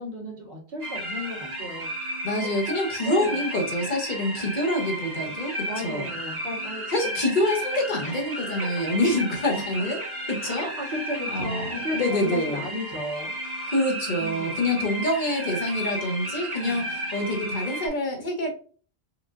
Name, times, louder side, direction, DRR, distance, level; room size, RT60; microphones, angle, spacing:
voice 1, 0.0-1.9 2.4-2.5 3.0-3.4 4.4-4.5 5.0-5.1 5.7-6.8 8.0-8.2 10.4-13.7 14.2-14.7 16.6-16.9, left 1 dB, 60° right, -3 dB, 1.7 m, -35 dB
sound 1, 0.8-17.9, right 1 dB, 40° right, 0.9 m, -33 dB
voice 2, 2.2-6.1 6.9-10.7 11.3-12.7 13.7-18.5, left 1 dB, 50° left, 1 dB, 1.1 m, -26 dB
4.7 x 2.5 x 2.4 m, 0.41 s
omnidirectional pair, 1.1 m